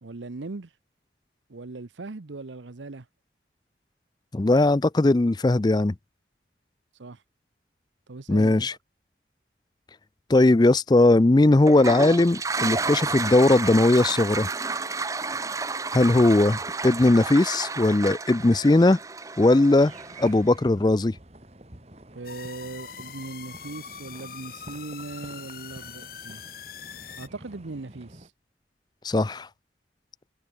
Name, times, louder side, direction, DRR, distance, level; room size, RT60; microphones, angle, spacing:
voice 1, 0.0-0.7 1.5-3.1 7.0-7.2 8.1-8.5 22.1-26.4 27.2-28.3, right 3 dB, 85° right, 0.9 m, -39 dB
voice 2, 4.3-5.9 8.3-8.7 10.3-14.5 15.9-19.0 19.4-19.9 20.2-21.1 29.0-29.5, left 2 dB, 25° left, 0.4 m, -19 dB
Toilet flush, 11.6-20.5, right 4 dB, 20° right, 0.6 m, -31 dB
sound 1, 19.8-28.3, right 1 dB, 35° right, 2.3 m, -49 dB
sound 2, 22.2-27.3, left 8 dB, 50° left, 1.3 m, -42 dB
head